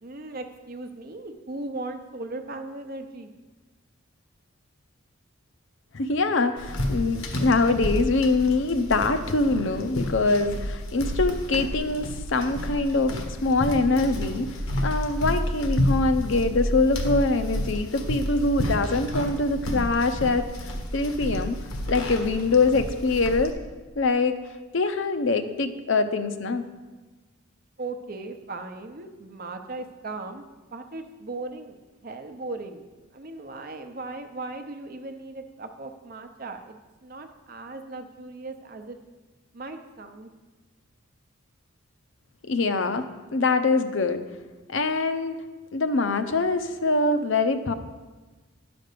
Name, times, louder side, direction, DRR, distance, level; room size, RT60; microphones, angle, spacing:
voice 1, 0.0-3.3 27.8-30.4 30.7-31.8 32.0-36.8 37.0-39.0 39.5-40.3, right 2 dB, 45° right, 6 dB, 0.7 m, -37 dB
voice 2, 5.9-21.6 21.9-23.5 24.0-24.4 24.7-26.6 42.5-44.2 44.7-45.4 45.7-47.7, left 3 dB, 60° left, 9 dB, 0.6 m, -24 dB
sound 1, 6.6-23.5, left 1 dB, 85° left, 1.3 m, -30 dB
10.5 x 5.2 x 6.7 m, 1.2 s
head